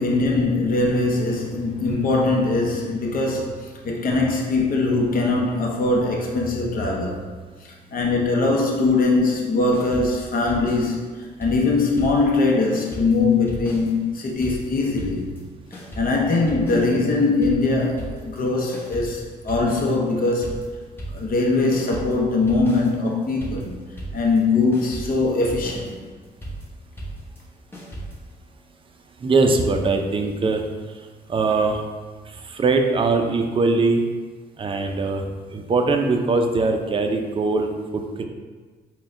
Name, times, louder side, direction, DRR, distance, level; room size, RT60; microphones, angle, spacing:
voice 1, 0.0-7.2 7.6-15.3 15.7-20.7 21.1-23.8 24.1-26.0, left 3 dB, 50° left, -1 dB, 0.7 m, -21 dB
sound 1, 9.7-12.5 12.7-28.3, right 1 dB, 10° left, 1.0 m, -36 dB
voice 2, 29.2-30.6 31.3-31.8 32.3-34.0 34.6-35.2 35.5-38.2, right 3 dB, 30° right, 4 dB, 0.4 m, -21 dB
4.1 x 2.2 x 3.7 m, 1.4 s
cardioid pair, 75°, 18 cm